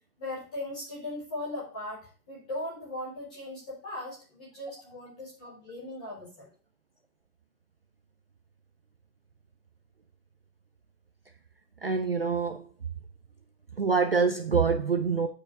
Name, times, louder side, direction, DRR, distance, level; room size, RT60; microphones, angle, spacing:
voice 1, 0.2-6.5, left 1 dB, 5° left, 0.7 m, -38 dB
voice 2, 11.8-12.7 13.8-15.3, right 5 dB, 40° right, 0.5 m, -25 dB
7.8 x 4.8 x 4.6 m
hypercardioid pair, 170°, 48 cm